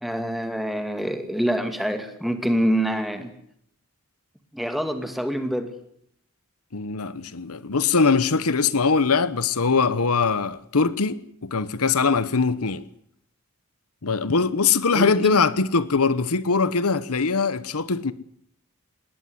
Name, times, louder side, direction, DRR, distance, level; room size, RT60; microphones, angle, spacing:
voice 1, 0.0-3.3 4.5-5.7 14.9-15.4, equal, ahead, 2.4 m, -26 dB
voice 2, 6.7-12.8 14.0-18.1, left 4 dB, 85° left, 1.1 m, -22 dB
20.0 x 19.0 x 9.8 m
head